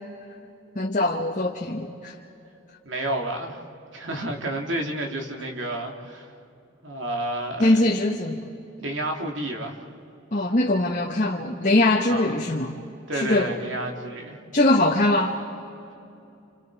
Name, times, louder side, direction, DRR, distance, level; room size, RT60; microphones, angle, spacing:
voice 1, 0.7-2.1 7.6-8.4 10.3-12.7 13.1-13.5 14.5-15.4, left 2 dB, 40° left, 0 dB, 1.3 m, -22 dB
voice 2, 2.8-3.6 3.9-6.3 6.8-7.8 8.8-9.8 12.1-12.4 13.1-14.4, right 1 dB, 65° right, 2 dB, 2.7 m, -30 dB
30.0 x 29.0 x 4.8 m, 2.7 s
head